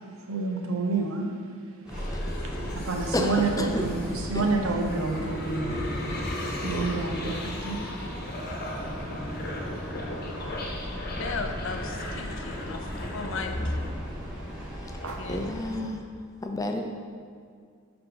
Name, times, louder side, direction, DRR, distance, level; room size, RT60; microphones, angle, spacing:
voice 1, 0.3-1.3 2.7-5.8 6.6-7.8 15.0-15.2, right 3 dB, 75° right, 0.8 m, -28 dB
Train, 1.8-15.8, equal, 5° right, 1.3 m, -37 dB
sound 1, 1.9-13.9, left 1 dB, 45° left, 1.0 m, -36 dB
voice 2, 3.1-3.9 4.3-4.5 15.3-16.0 16.4-16.8, left 1 dB, 15° left, 0.5 m, -30 dB
voice 3, 10.7-13.8 15.0-15.7, left 4 dB, 60° left, 0.5 m, -37 dB
10.0 x 3.9 x 3.8 m
head